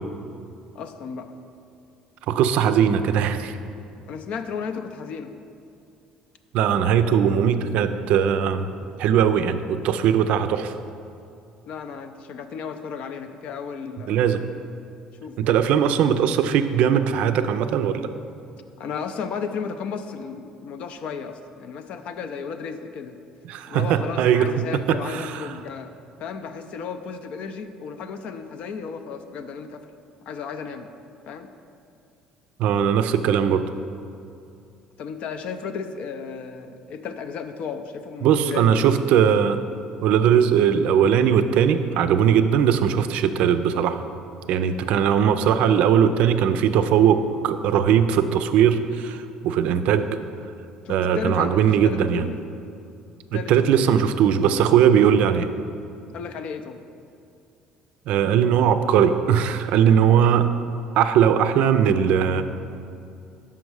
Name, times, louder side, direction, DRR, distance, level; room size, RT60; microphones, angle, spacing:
voice 1, 0.7-1.3 4.1-5.3 11.7-14.3 15.2-15.7 18.8-23.2 23.7-25.9 26.2-30.0 30.3-30.9 31.3-31.5 35.0-38.8 50.8-52.4 53.3-53.9 56.1-56.8, left 6 dB, 60° left, 8 dB, 0.4 m, -34 dB
voice 2, 2.3-3.6 6.5-8.7 9.0-10.7 14.1-14.4 15.4-18.1 23.5-24.5 24.9-25.5 32.6-33.6 38.2-39.6 40.0-44.0 44.5-50.2 50.9-52.2 53.5-55.5 58.1-60.5 61.0-62.4, right 8 dB, 70° right, 10 dB, 0.4 m, -19 dB
5.7 x 5.2 x 4.7 m, 2.6 s
supercardioid pair, 75°, 2 cm